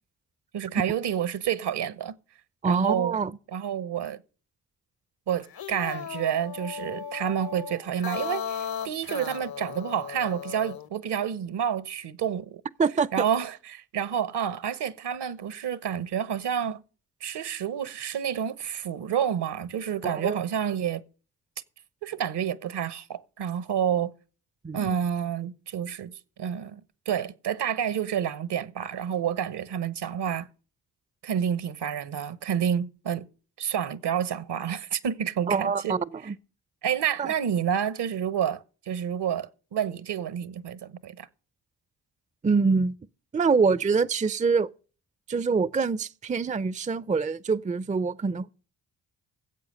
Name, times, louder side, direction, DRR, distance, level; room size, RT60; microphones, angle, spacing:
voice 1, 0.5-2.1 2.6-3.2 3.5-4.2 5.3-12.6 13.1-16.8 17.2-21.0 22.0-24.1 24.7-26.1 26.4-26.8 27.1-30.5 31.2-33.3 33.6-36.0 36.8-41.3, right 8 dB, 65° right, 1.0 m, -29 dB
voice 2, 2.6-3.3 12.8-13.3 20.0-20.4 24.6-24.9 35.5-36.3 37.2-37.3 42.4-43.0 43.3-44.7 45.3-48.5, right 5 dB, 15° right, 0.5 m, -25 dB
sound 1, 5.4-10.9, left 8 dB, 55° left, 0.9 m, -36 dB
14.5 x 8.0 x 6.4 m
hypercardioid pair, 40°, 45 cm